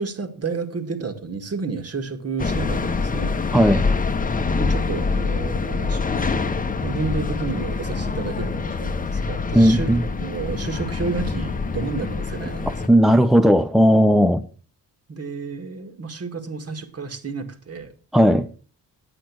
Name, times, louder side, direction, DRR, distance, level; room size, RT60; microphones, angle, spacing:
voice 1, 0.0-3.4 4.3-6.0 6.8-12.9 15.1-17.9, right 4 dB, 40° right, 2.0 m, -31 dB
sound 1, 2.4-12.9, left 4 dB, 25° left, 0.8 m, -25 dB
voice 2, 3.5-3.8 9.5-10.0 12.9-14.4 18.1-18.5, equal, ahead, 0.5 m, -15 dB
10.5 x 8.3 x 6.1 m
cardioid pair, 130°, 35 cm